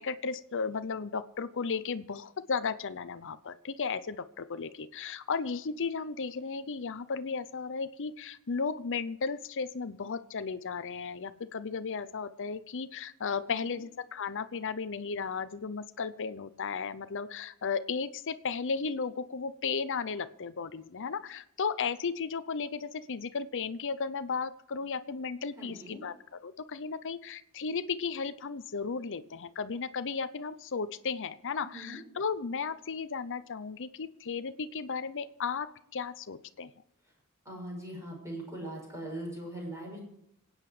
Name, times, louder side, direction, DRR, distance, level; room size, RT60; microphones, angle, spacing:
voice 1, 0.0-26.1 26.4-36.7, left 5 dB, 55° left, 12 dB, 0.7 m, -35 dB
voice 2, 13.5-13.8 25.6-26.0 31.7-32.0 37.4-40.0, right 1 dB, 15° right, -1 dB, 6.3 m, -41 dB
27.0 x 9.0 x 5.0 m, 0.74 s
head